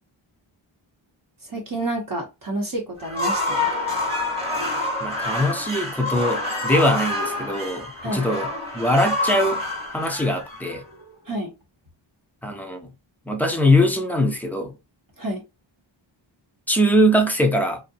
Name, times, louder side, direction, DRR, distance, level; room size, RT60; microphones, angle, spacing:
voice 1, 1.4-3.7 8.0-8.3 11.3-11.5 15.2-15.4, right 1 dB, 45° right, 0.8 m, -29 dB
sound 1, 3.0-11.1, left 2 dB, 10° right, 0.9 m, -27 dB
voice 2, 5.0-8.5 8.7-9.6 9.9-10.8 12.4-12.9 13.3-14.7 16.7-17.8, equal, 5° left, 0.5 m, -21 dB
2.6 x 2.0 x 2.6 m
wide cardioid pair, 90°, 49 cm